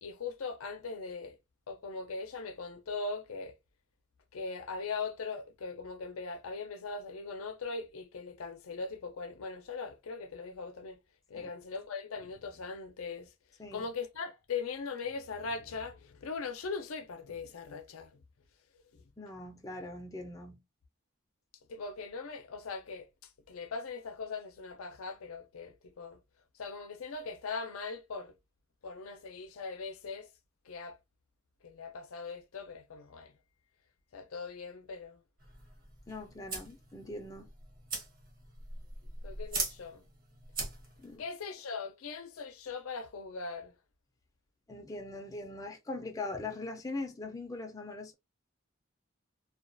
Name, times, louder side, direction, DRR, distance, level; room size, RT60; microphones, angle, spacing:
voice 1, 0.0-1.4 1.7-3.5 4.3-11.0 11.3-13.3 13.7-18.1 18.9-19.0 21.7-23.1 23.5-26.2 26.6-28.3 28.8-30.3 30.7-31.0 31.6-33.3 34.1-35.2 39.2-40.0 41.2-43.7, left 4 dB, 90° left, 0.5 m, -40 dB
voice 2, 19.2-20.6 36.1-37.5 41.0-41.2 44.7-48.1, left 2 dB, 15° left, 0.4 m, -41 dB
sound 1, 35.4-41.2, right 3 dB, 45° right, 0.9 m, -41 dB
2.3 x 2.3 x 2.5 m
head